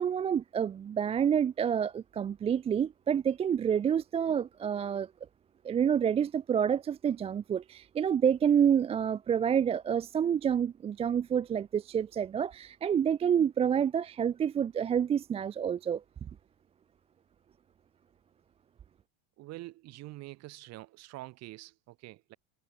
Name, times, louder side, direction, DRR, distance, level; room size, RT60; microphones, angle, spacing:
voice 1, 0.0-5.1 5.6-16.0, right 8 dB, 15° right, 0.6 m, -28 dB
voice 2, 19.4-22.4, right 18 dB, 40° right, 4.8 m, -46 dB
cardioid pair, 175°, 38 cm